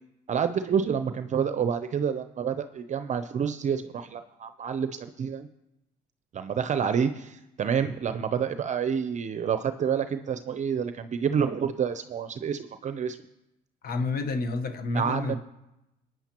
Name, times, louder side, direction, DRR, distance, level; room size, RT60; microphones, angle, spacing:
voice 1, 0.3-5.5 6.3-13.2 14.9-15.4, right 7 dB, 40° right, 0.6 m, -28 dB
voice 2, 13.8-15.4, left 3 dB, 55° left, 1.1 m, -29 dB
22.0 x 9.0 x 3.0 m
supercardioid pair, 80°, 18 cm